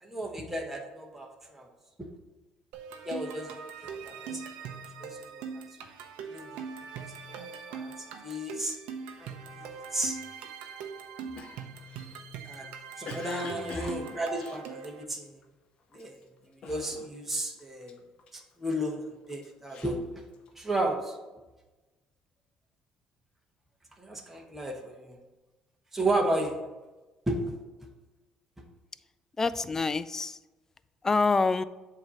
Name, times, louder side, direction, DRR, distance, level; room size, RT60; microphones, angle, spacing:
voice 1, 0.0-1.7 3.0-3.5 3.8-4.4 5.0-5.5 6.3-6.5 7.4-7.9 8.2-8.8 9.2-10.2 12.4-12.7 13.0-15.4 15.9-16.2 16.6-18.0 18.3-20.2 20.5-21.1 24.0-25.2 25.9-26.6 27.3-27.6, right 1 dB, 10° right, 0 dB, 1.1 m, -33 dB
sound 1, 2.7-15.0, right 6 dB, 85° right, 0.7 m, -41 dB
Cough, 11.3-15.4 15.9-16.2 16.6-17.3 17.6-18.8 19.3-20.8, left 5 dB, 55° left, 0.8 m, -46 dB
voice 2, 13.6-13.9 29.4-30.4 31.0-31.6, left 4 dB, 25° left, 15 dB, 0.3 m, -27 dB
7.8 x 2.9 x 6.1 m, 1.1 s
cardioid pair, 90°, 2 cm